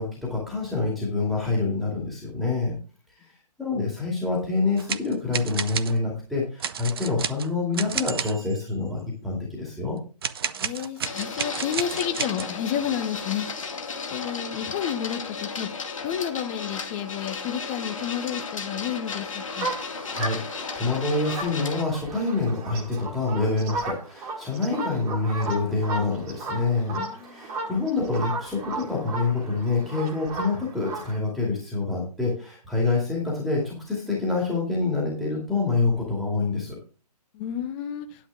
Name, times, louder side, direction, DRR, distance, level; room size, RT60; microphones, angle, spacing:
voice 1, 0.0-2.7 3.1-10.0 20.0-36.7, left 3 dB, ahead, -4 dB, 2.3 m, -27 dB
sound 1, 4.8-6.0 6.6-8.6 10.2-12.5, right 7 dB, 35° right, 0.7 m, -31 dB
voice 2, 10.6-13.5 14.1-15.7 16.0-19.7 26.9-27.7 37.3-38.1, left 9 dB, 15° left, 8 dB, 0.8 m, -31 dB
Printer, 11.0-21.8, left 5 dB, 50° left, 2.2 m, -34 dB
sound 2, 19.5-31.2, right 3 dB, 15° right, 1.9 m, -34 dB
10.5 x 10.0 x 3.5 m, 0.36 s
figure-of-eight pair, 140°, 21 cm